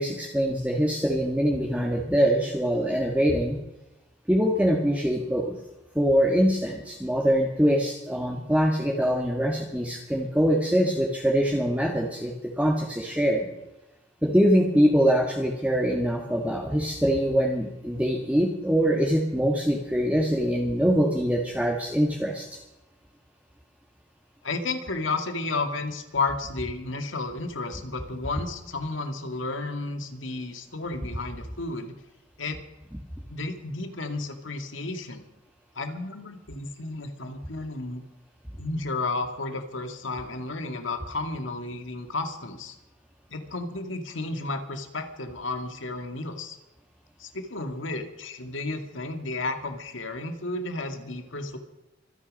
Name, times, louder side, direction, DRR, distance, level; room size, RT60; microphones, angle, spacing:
voice 1, 0.0-3.6 4.3-5.5 5.9-13.5 14.2-22.5, equal, 5° right, -1 dB, 1.7 m, -23 dB
voice 2, 24.4-31.9 32.4-32.6 33.3-35.2 35.8-38.0 38.6-42.8 43.3-46.6 47.2-51.6, left 3 dB, 90° left, 6 dB, 2.2 m, -32 dB
25.0 x 9.9 x 5.3 m, 0.99 s
head